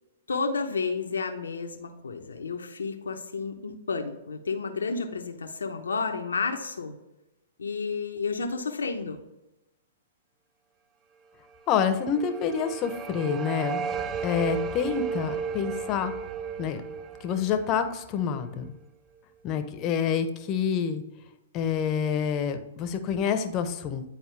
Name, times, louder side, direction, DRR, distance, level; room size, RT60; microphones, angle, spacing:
voice 1, 0.3-6.9 7.6-9.2, left 4 dB, 85° left, 4 dB, 0.8 m, -31 dB
voice 2, 11.7-13.8 14.2-16.1 16.6-16.8 17.2-18.7 19.4-21.0 21.5-24.0, left 7 dB, 35° left, 8 dB, 0.8 m, -27 dB
sound 1, 11.7-18.7, right 6 dB, 20° right, 0.4 m, -35 dB
9.4 x 4.4 x 3.3 m, 0.97 s
hypercardioid pair, 120°, 0 cm